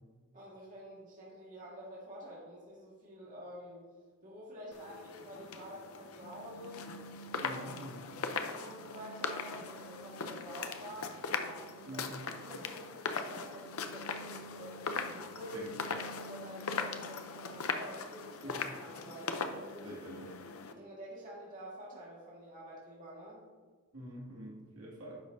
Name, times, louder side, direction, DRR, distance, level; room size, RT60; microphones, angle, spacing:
voice 1, 0.3-3.9 4.2-6.9 7.4-7.9 8.2-11.1 11.4-15.5 15.8-19.9 20.7-23.4, equal, 35° right, -5 dB, 1.7 m, -49 dB
sound 1, 4.7-20.7, left 4 dB, 75° left, 0.6 m, -40 dB
voice 2, 7.4-8.1 11.9-12.0 15.5-15.7 18.4-18.5 19.8-20.3 23.9-25.2, right 1 dB, 75° right, -4 dB, 2.3 m, -45 dB
10.5 x 6.3 x 2.7 m, 1.5 s
head